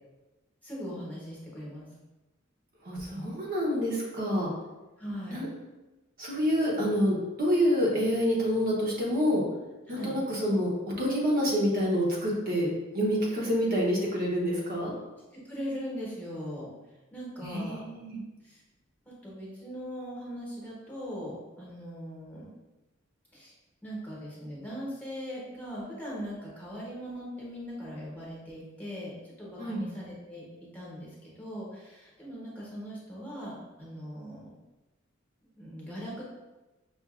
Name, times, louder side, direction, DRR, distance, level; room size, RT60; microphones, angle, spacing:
voice 1, 0.6-1.9 5.0-5.4 9.9-10.1 15.4-16.7 17.1-17.8 18.4-18.6 19.0-22.5 23.3-23.5 23.8-30.4 30.7-34.5 35.6-36.3, equal, 10° left, -7 dB, 1.1 m, -40 dB
voice 2, 2.8-4.5 5.3-5.5 6.2-9.4 9.9-10.7 11.0-12.7 12.9-14.9 17.4-18.2 29.6-29.9, equal, 45° right, -4 dB, 0.8 m, -27 dB
5.6 x 2.5 x 2.4 m, 1.1 s
head